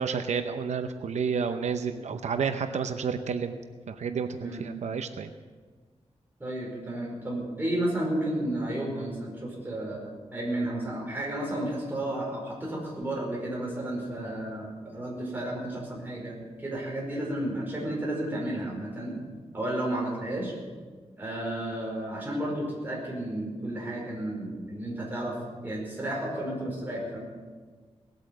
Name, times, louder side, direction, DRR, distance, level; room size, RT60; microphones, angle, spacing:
voice 1, 0.0-3.6 3.9-5.3, right 6 dB, 85° right, 8 dB, 0.7 m, -30 dB
voice 2, 6.4-19.1 19.5-20.5 21.2-25.3 25.6-27.2, right 1 dB, 15° right, -3 dB, 5.0 m, -32 dB
18.5 x 9.0 x 7.7 m, 1.5 s
wide cardioid pair, 170°, 11 cm